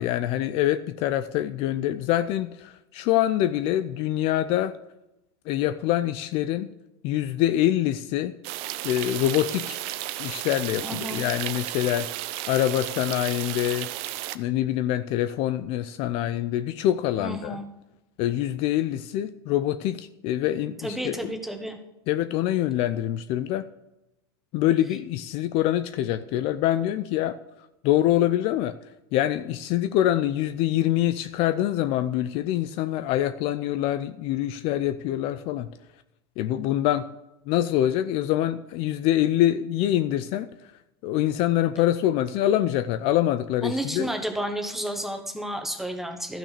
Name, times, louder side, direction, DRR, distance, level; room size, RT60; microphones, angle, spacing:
voice 1, 0.0-4.8 5.5-6.7 7.0-8.4 8.8-9.8 10.2-12.1 12.5-13.9 14.3-17.6 18.2-21.3 22.1-23.7 24.5-27.4 27.8-28.7 29.1-35.7 36.4-37.1 37.5-40.7 41.0-44.1, left 13 dB, 45° left, 12 dB, 0.5 m, -25 dB
sound 1, 8.4-14.4, right 15 dB, 50° right, 0.6 m, -33 dB
voice 2, 10.8-11.3 17.2-17.7 20.8-21.8 43.6-46.4, right 1 dB, ahead, 4 dB, 1.4 m, -31 dB
12.5 x 6.1 x 6.6 m, 0.94 s
supercardioid pair, 135°, 13 cm